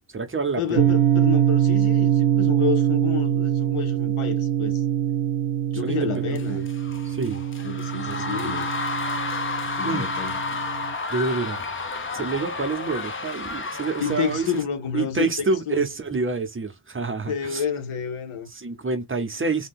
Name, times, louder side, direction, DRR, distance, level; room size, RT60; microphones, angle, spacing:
voice 1, 0.0-0.9 5.8-6.7 7.0-7.4 8.1-8.6 9.8-10.1 11.1-11.6 12.1-14.5 14.9-17.6 18.5-19.7, right 4 dB, 25° right, 0.6 m, -28 dB
voice 2, 0.6-4.8 5.7-6.6 7.6-8.7 9.8-10.4 14.0-15.8 17.3-18.5, left 8 dB, 80° left, 1.0 m, -29 dB
sound 1, 0.8-10.9, right 10 dB, 75° right, 0.6 m, -23 dB
sound 2, 6.3-14.6, left 4 dB, 25° left, 0.6 m, -31 dB
2.7 x 2.2 x 3.5 m
wide cardioid pair, 100°, 48 cm